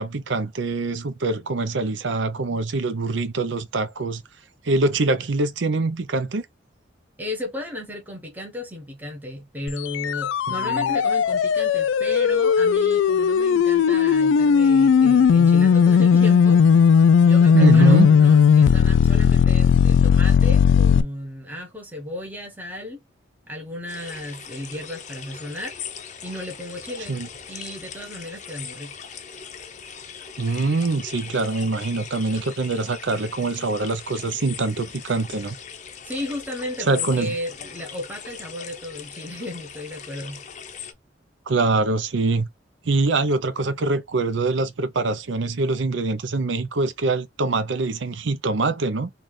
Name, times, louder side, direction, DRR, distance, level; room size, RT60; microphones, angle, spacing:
voice 1, 0.0-4.2 4.6-6.5 10.6-11.0 17.5-18.1 27.1-27.3 30.4-35.5 36.9-37.3 41.5-42.5 42.8-49.1, right 3 dB, 75° right, 0.6 m, -24 dB
voice 2, 7.2-23.0 23.5-25.7 26.2-27.2 27.5-29.0 36.0-40.4, left 1 dB, 10° right, 0.8 m, -34 dB
sound 1, 9.7-21.0, left 6 dB, 75° left, 0.3 m, -16 dB
sound 2, 23.9-40.9, left 7 dB, 40° left, 0.6 m, -39 dB
4.0 x 2.4 x 3.2 m
head